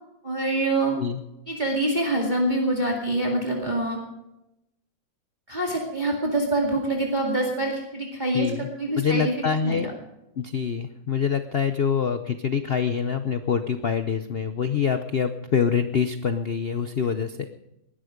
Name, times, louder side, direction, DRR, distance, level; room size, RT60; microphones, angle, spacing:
voice 1, 0.2-1.0 1.5-4.0 5.5-9.3 9.6-9.9, right 2 dB, 25° right, -1 dB, 2.3 m, -25 dB
voice 2, 8.3-8.7 9.0-9.9 10.4-17.4, left 7 dB, 80° left, 9 dB, 0.5 m, -25 dB
20.0 x 11.5 x 5.1 m, 0.90 s
omnidirectional pair, 2.0 m